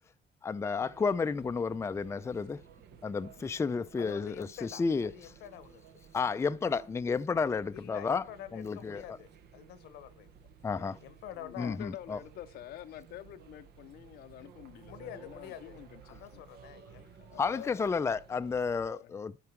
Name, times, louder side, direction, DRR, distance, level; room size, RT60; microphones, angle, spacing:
voice 1, 0.4-2.6 3.0-5.1 6.1-8.2 8.5-9.2 10.6-11.0 11.6-12.2 17.4-19.3, left 5 dB, 15° left, 0.4 m, -31 dB
sound 1, 0.8-18.9, right 7 dB, 75° right, 1.1 m, -55 dB
voice 2, 4.0-6.1 6.6-6.9 7.7-10.3 11.0-11.8 14.9-15.8 16.1-17.1, left 11 dB, 90° left, 1.1 m, -47 dB
voice 3, 11.4-16.4 17.2-18.1 18.8-19.2, left 13 dB, 65° left, 0.6 m, -48 dB
12.0 x 4.8 x 4.5 m
cardioid pair, 110°, 17 cm